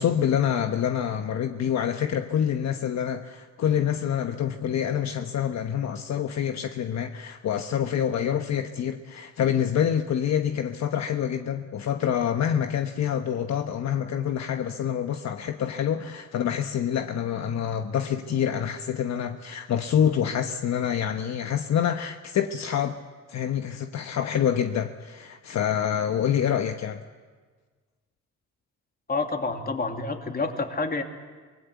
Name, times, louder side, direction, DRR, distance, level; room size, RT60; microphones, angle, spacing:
voice 1, 0.0-23.0 23.3-27.0, left 9 dB, 60° left, 7 dB, 1.1 m, -26 dB
voice 2, 29.1-31.0, left 3 dB, 30° left, 4 dB, 2.6 m, -28 dB
24.5 x 19.5 x 8.2 m, 1.4 s
cardioid pair, 90°, 30 cm